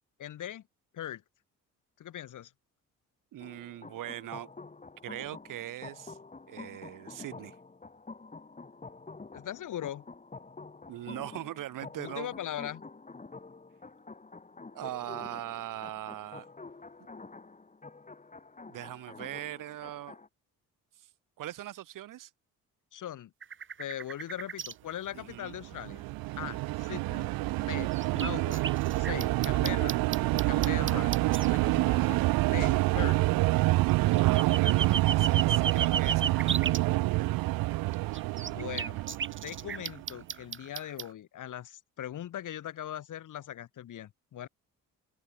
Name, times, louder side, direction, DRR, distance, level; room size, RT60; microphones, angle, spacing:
voice 1, 0.2-0.6 0.9-1.2 2.0-2.5 9.3-10.0 12.0-12.8 22.9-23.3 23.8-26.0 26.4-27.3 27.6-28.7 29.0-30.0 30.3-32.2 32.5-33.2 38.4-39.0 39.4-44.5, left 11 dB, 65° left, 3.4 m, -40 dB
voice 2, 3.3-4.5 5.0-6.2 6.5-7.6 10.9-12.3 14.7-16.5 18.7-20.2 21.0-21.1 21.4-22.3 25.1-25.6 26.5-26.8 34.2-36.7, right 13 dB, 70° right, 2.2 m, -41 dB
sound 1, 3.4-20.3, left 3 dB, 20° left, 4.0 m, -48 dB
sound 2, 23.4-24.7 26.9-27.0 27.7-31.5 33.9-36.8 37.7-41.1, right 7 dB, 35° right, 1.4 m, -35 dB
sound 3, 25.5-40.0, right 20 dB, 85° right, 1.1 m, -27 dB
open air
cardioid pair, 85°, 34 cm